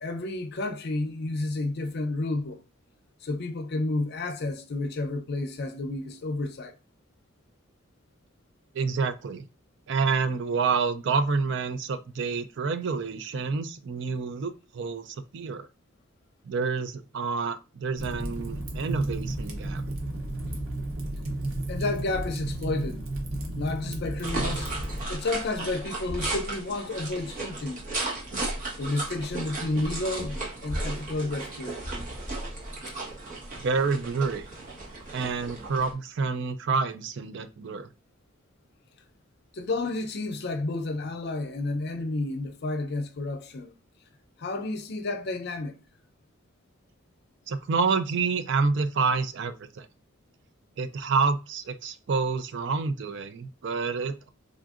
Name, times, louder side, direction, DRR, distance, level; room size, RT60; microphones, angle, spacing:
voice 1, 0.0-2.6 3.2-6.7 21.7-23.0 23.6-24.7 25.1-27.8 28.8-30.4 30.6-31.8 32.9-33.0 39.5-43.7 44.4-45.8, left 2 dB, 50° left, 0.5 m, -31 dB
voice 2, 8.7-9.4 9.9-15.7 16.5-19.8 33.5-34.5 35.1-37.9 47.5-49.9 50.8-54.3, right 4 dB, 60° right, 0.4 m, -28 dB
Fire, 18.0-25.0, right 1 dB, 90° right, 0.9 m, -33 dB
sound 1, 24.2-35.9, right 2 dB, 40° right, 1.1 m, -35 dB
3.8 x 2.6 x 2.4 m
head